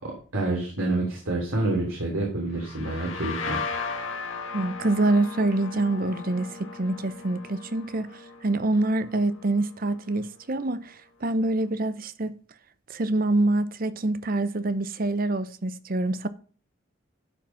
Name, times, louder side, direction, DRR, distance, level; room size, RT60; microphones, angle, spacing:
voice 1, 0.0-3.6, right 2 dB, 85° right, 3.0 m, -28 dB
sound 1, 2.5-10.1, left 4 dB, 75° left, 1.8 m, -37 dB
voice 2, 4.5-12.4 12.9-16.3, right 2 dB, 45° right, 0.7 m, -26 dB
11.5 x 5.0 x 5.5 m
head